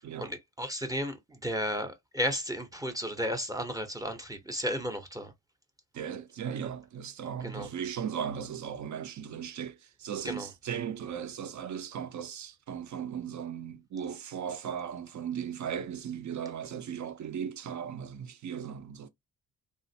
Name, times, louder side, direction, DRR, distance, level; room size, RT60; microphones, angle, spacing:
voice 1, 0.0-5.3 7.4-7.7 10.2-10.5, equal, 10° right, 0.7 m, -34 dB
voice 2, 5.9-19.1, right 8 dB, 50° right, 0.6 m, -37 dB
3.3 x 2.4 x 2.7 m
cardioid pair, 115°, 36 cm